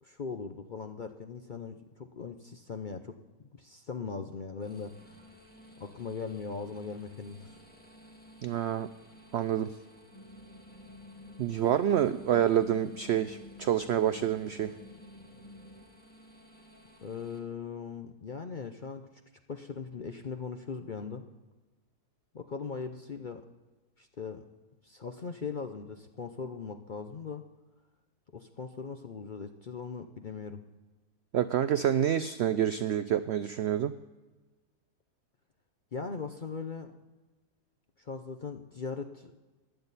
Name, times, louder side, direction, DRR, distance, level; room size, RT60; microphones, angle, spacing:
voice 1, 0.0-3.1 3.4-4.9 5.8-7.6 17.0-19.1 19.5-21.3 22.3-23.4 24.0-24.4 24.8-27.4 28.3-30.6 35.9-37.0 38.0-39.3, left 5 dB, 50° left, 6 dB, 0.6 m, -39 dB
sound 1, 4.6-17.4, equal, 5° left, 1.6 m, -56 dB
voice 2, 8.4-8.9 9.3-9.7 11.4-14.7 31.3-33.9, right 10 dB, 80° right, 13 dB, 0.5 m, -27 dB
sound 2, 10.1-15.8, left 2 dB, 20° left, 1.7 m, -51 dB
15.5 x 10.5 x 4.1 m, 1.2 s
omnidirectional pair, 1.7 m